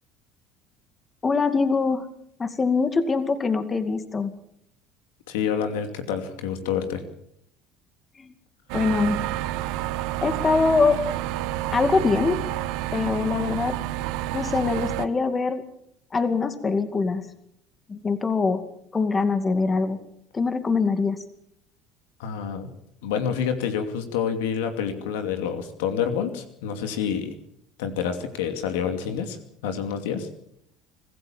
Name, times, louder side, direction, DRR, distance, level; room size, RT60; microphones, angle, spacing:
voice 1, 1.2-2.1 2.4-4.3 8.2-8.3 8.7-9.2 10.2-11.0 11.7-12.4 12.9-13.8 14.3-15.6 16.1-17.3 17.9-18.6 18.9-20.0 20.3-21.2, left 4 dB, 30° left, 10 dB, 2.3 m, -23 dB
voice 2, 5.3-7.0 22.2-22.7 23.0-27.3 27.8-29.4 29.6-30.3, left 7 dB, 85° left, 7 dB, 2.6 m, -28 dB
sound 1, 8.7-15.1, right 15 dB, 75° right, 1.2 m, -29 dB
25.5 x 15.5 x 7.3 m, 0.72 s
supercardioid pair, 80°, 0 cm